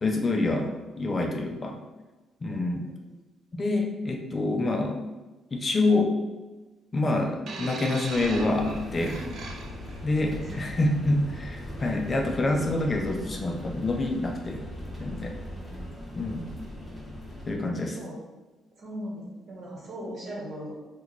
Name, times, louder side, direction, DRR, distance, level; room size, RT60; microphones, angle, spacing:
voice 1, 0.0-1.8 2.4-2.8 3.5-5.0 5.5-6.1 6.9-9.2 10.0-14.6 15.0-15.3 16.2-16.5 17.5-18.0, left 2 dB, 35° left, 2 dB, 0.4 m, -27 dB
voice 2, 0.6-0.9 2.5-3.2 10.3-10.8 15.5-15.9 16.8-17.0 17.8-18.2 18.8-20.7, equal, 55° right, -3 dB, 1.1 m, -40 dB
sound 1, 7.5-10.0 10.9-11.1, right 4 dB, 75° right, 0.4 m, -40 dB
sound 2, 8.1-17.5, left 1 dB, ahead, 1.0 m, -39 dB
2.8 x 2.2 x 3.8 m, 1.2 s
cardioid pair, 90°, 0 cm